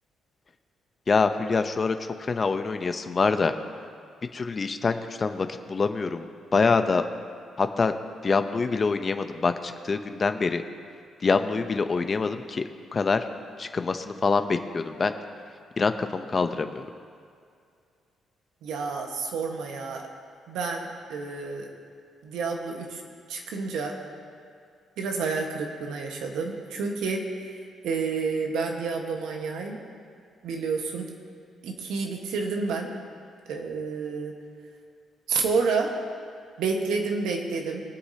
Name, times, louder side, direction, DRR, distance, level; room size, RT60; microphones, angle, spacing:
voice 1, 1.1-3.5 4.3-7.1 7.6-7.9 8.2-10.6 11.2-13.3 13.6-15.1 15.8-16.9, left 4 dB, 35° left, 8 dB, 0.7 m, -25 dB
voice 2, 18.6-20.1 20.5-21.7 22.2-23.0 23.3-23.9 25.0-27.5 27.8-29.8 30.4-31.0 31.6-32.9 33.5-34.3 35.3-35.9 36.6-37.8, right 4 dB, 85° right, 2 dB, 1.4 m, -29 dB
23.0 x 8.1 x 2.9 m, 2.3 s
cardioid pair, 90°, 0 cm